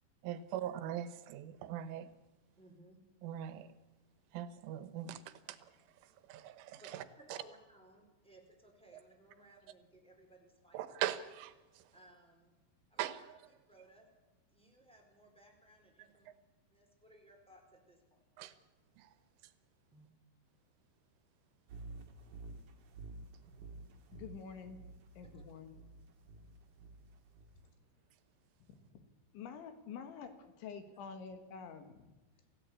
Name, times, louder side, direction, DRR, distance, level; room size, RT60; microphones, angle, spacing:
voice 1, 0.2-2.1 3.2-3.7 4.3-5.2 5.5-5.6 6.3-7.0 7.3-7.4 10.7-11.5 13.0-13.2 18.4-18.5, right 11 dB, 85° right, 13 dB, 3.7 m, -40 dB
voice 2, 2.6-3.0 6.8-10.9 11.9-12.5 12.9-14.1 14.5-16.3 16.7-18.2 19.9-20.1 25.2-25.4 32.4-32.5, right 1 dB, ahead, 2 dB, 3.7 m, -61 dB
sound 1, 21.7-27.7, right 2 dB, 55° right, 2.8 m, -51 dB
voice 3, 24.1-24.8 25.2-25.7 28.7-29.1 29.3-32.1, left 6 dB, 75° left, 8 dB, 4.0 m, -48 dB
28.0 x 15.5 x 8.4 m, 1.1 s
omnidirectional pair, 5.5 m